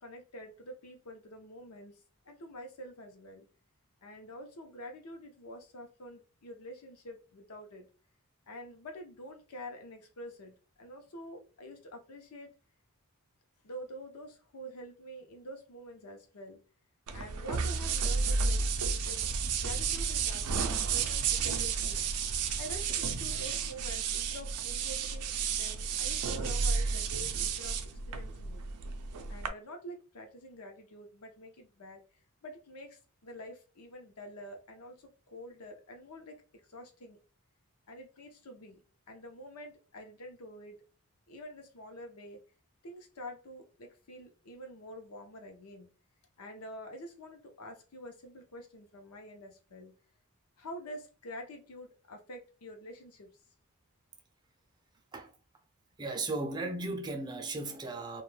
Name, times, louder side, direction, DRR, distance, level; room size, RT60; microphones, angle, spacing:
voice 1, 0.0-3.5 4.0-7.9 8.5-12.5 13.6-16.6 17.1-18.6 19.0-19.3 19.6-22.0 22.6-28.6 29.3-32.0 32.4-36.4 36.7-37.2 37.9-38.8 39.1-40.8 41.3-42.4 42.8-45.9 46.4-49.9 50.6-53.3, equal, 85° left, 0.7 m, -47 dB
sound 1, 17.1-29.5, right 5 dB, 90° right, 0.4 m, -32 dB
voice 2, 56.0-58.2, right 2 dB, 20° right, 0.3 m, -36 dB
2.3 x 2.2 x 3.2 m
head